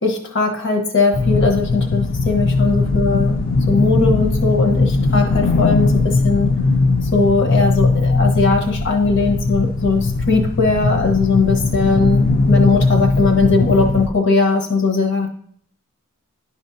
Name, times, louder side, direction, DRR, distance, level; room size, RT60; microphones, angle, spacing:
voice 1, 0.0-3.4 3.7-6.5 7.1-15.3, left 3 dB, 60° left, 3 dB, 1.0 m, -19 dB
sound 1, 1.1-14.1, left 3 dB, 45° left, 0.4 m, -19 dB
10.5 x 5.3 x 2.6 m, 0.63 s
head